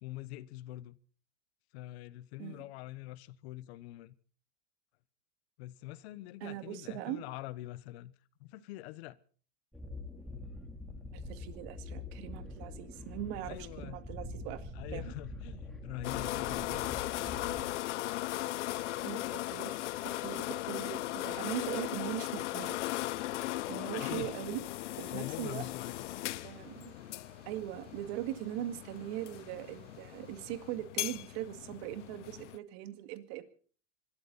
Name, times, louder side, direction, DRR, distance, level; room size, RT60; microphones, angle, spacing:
voice 1, 0.0-1.0 1.7-4.1 5.6-8.1 8.4-9.2 13.4-14.0 14.7-17.0 23.9-24.3 25.1-26.0, left 16 dB, 65° left, 1.1 m, -44 dB
voice 2, 6.4-7.2 11.1-15.1 19.0-19.8 20.2-22.8 23.7-24.6 25.0-25.6 26.4-26.9 27.5-33.4, right 13 dB, 60° right, 2.3 m, -40 dB
sound 1, 9.7-17.7, left 2 dB, ahead, 3.3 m, -44 dB
sound 2, 16.0-32.6, left 16 dB, 80° left, 0.7 m, -38 dB
sound 3, 18.1-30.8, right 4 dB, 25° right, 7.5 m, -61 dB
25.5 x 13.5 x 4.1 m
supercardioid pair, 120°, 35 cm